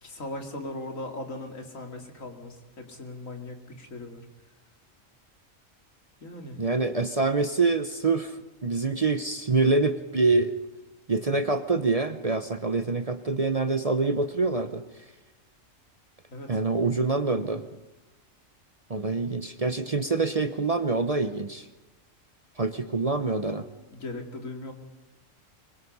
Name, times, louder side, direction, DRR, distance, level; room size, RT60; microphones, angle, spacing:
voice 1, 0.0-4.3 6.2-6.6 16.3-16.6 23.9-24.7, left 2 dB, 85° left, 3 dB, 2.9 m, -39 dB
voice 2, 6.6-8.4 8.6-10.5 11.1-14.8 16.5-17.6 18.9-21.7 22.6-23.7, right 3 dB, 35° right, 10 dB, 0.8 m, -25 dB
25.0 x 22.0 x 5.5 m, 1.1 s
omnidirectional pair, 1.4 m